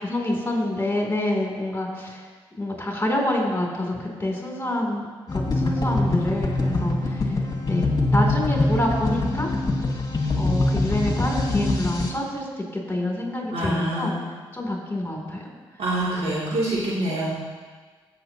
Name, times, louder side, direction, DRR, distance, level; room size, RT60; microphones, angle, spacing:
voice 1, 0.0-2.3 2.6-7.3 7.7-9.5 10.4-12.5 12.7-14.1 14.5-15.4, left 1 dB, 20° left, -1 dB, 3.2 m, -27 dB
sound 1, 5.3-12.1, left 2 dB, 35° left, 1.6 m, -23 dB
voice 2, 13.5-14.2 15.8-17.3, right 1 dB, 70° right, -8 dB, 3.1 m, -25 dB
16.0 x 6.3 x 3.0 m, 1.5 s
hypercardioid pair, 40°, 11 cm